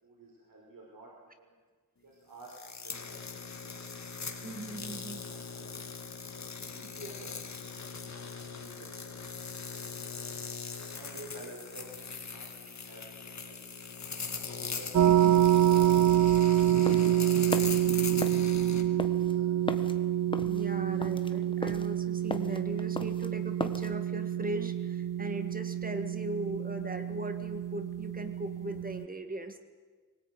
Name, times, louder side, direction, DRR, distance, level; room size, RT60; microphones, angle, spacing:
voice 1, 0.0-1.5 2.0-3.8 4.1-4.5 4.9-5.7 6.2-9.5 10.9-13.8 14.2-15.3 15.7-16.2 16.6-19.7 20.0-20.2, right 1 dB, 85° right, -1 dB, 5.0 m, -53 dB
sound 1, 2.4-18.8, left 5 dB, 55° left, 2.3 m, -41 dB
voice 2, 4.4-5.3 7.0-7.2 20.4-29.6, right 1 dB, 25° right, 7 dB, 1.9 m, -39 dB
sound 2, 14.9-29.0, right 12 dB, 70° right, 0.6 m, -27 dB
sound 3, 16.8-23.9, left 2 dB, 15° left, 1.2 m, -38 dB
22.5 x 19.0 x 9.3 m, 1.4 s
wide cardioid pair, 150°, 33 cm